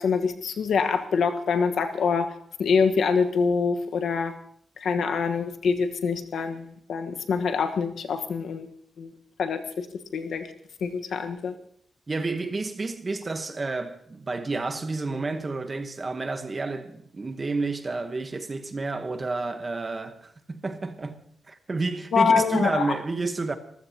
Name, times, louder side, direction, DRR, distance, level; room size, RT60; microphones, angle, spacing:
voice 1, 0.0-2.3 2.6-4.3 4.8-8.7 9.0-9.1 9.4-9.9 10.1-10.5 10.8-11.5 22.1-22.9, left 5 dB, 80° left, 1.3 m, -25 dB
voice 2, 12.1-21.2 21.5-23.6, right 3 dB, 30° right, 1.1 m, -30 dB
26.5 x 14.5 x 2.9 m
wide cardioid pair, 155°, 0 cm